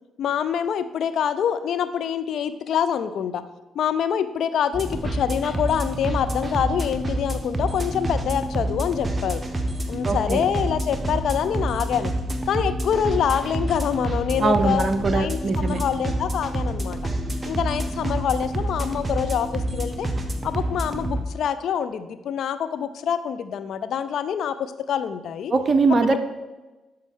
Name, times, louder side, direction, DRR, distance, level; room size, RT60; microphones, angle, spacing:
voice 1, 0.2-3.4 3.8-9.4 9.9-12.1 12.5-17.0 17.5-20.1 20.4-25.5 26.1-26.2, left 8 dB, 60° left, 11 dB, 0.4 m, -25 dB
sound 1, 4.7-21.2, right 1 dB, 20° right, 1.0 m, -28 dB
voice 2, 10.0-10.5 14.4-15.8 25.5-26.2, right 3 dB, 40° right, 9 dB, 0.6 m, -21 dB
12.0 x 4.5 x 3.6 m, 1.2 s
figure-of-eight pair, 40°, 0 cm